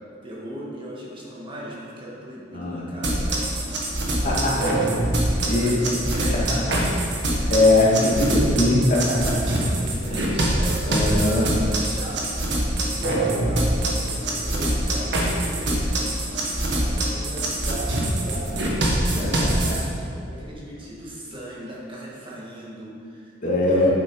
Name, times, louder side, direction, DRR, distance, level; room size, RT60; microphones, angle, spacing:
voice 1, 0.2-3.3 4.1-4.8 5.3-6.6 8.1-8.3 9.6-12.5 13.0-15.8 16.8-18.8 20.2-23.3 23.7-23.9, right 1 dB, 30° right, -5 dB, 1.7 m, -37 dB
voice 2, 2.5-2.9 4.2-4.7 5.4-5.9 7.5-9.4 10.8-11.4 19.1-19.8 23.4-23.9, left 2 dB, 45° left, -6 dB, 2.2 m, -21 dB
sound 1, 3.0-19.8, right 1 dB, 65° right, 1.5 m, -24 dB
8.9 x 7.3 x 4.8 m, 2.4 s
head